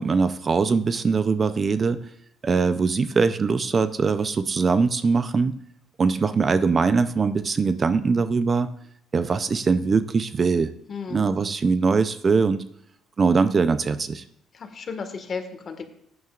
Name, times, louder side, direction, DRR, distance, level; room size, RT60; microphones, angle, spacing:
voice 1, 0.0-2.0 2.4-5.5 6.0-8.7 9.1-10.7 11.1-12.6 13.2-14.2, right 4 dB, 35° right, 12 dB, 0.6 m, -22 dB
voice 2, 10.9-11.2 14.5-15.9, left 5 dB, 45° left, 6 dB, 1.7 m, -34 dB
14.5 x 9.5 x 2.5 m, 0.75 s
cardioid pair, 90°, 0 cm